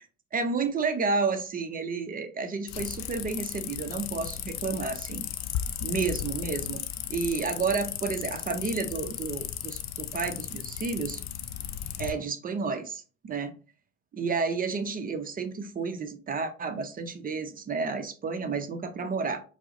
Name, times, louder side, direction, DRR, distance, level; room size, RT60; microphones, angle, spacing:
voice 1, 0.3-5.2 5.8-6.8 7.1-11.2 12.0-13.6 14.1-19.4, right 4 dB, 25° right, 0.5 m, -31 dB
sound 1, 2.7-12.1, left 11 dB, 50° left, 0.5 m, -35 dB
4.5 x 2.0 x 2.7 m
hypercardioid pair, 75°, 35 cm